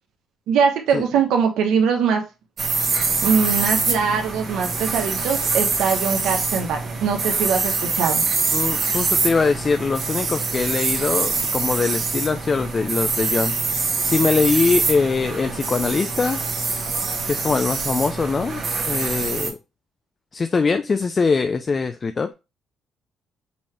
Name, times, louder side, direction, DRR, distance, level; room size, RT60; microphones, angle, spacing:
voice 1, 0.5-2.2 3.2-8.3, right 6 dB, 85° right, 1.0 m, -22 dB
sound 1, 2.6-19.5, right 4 dB, 45° right, 1.4 m, -24 dB
voice 2, 8.5-13.5 14.0-16.4 17.3-18.6 18.9-19.6 20.3-22.3, left 4 dB, 35° left, 0.4 m, -22 dB
5.4 x 2.9 x 3.2 m
cardioid pair, 100°, 0 cm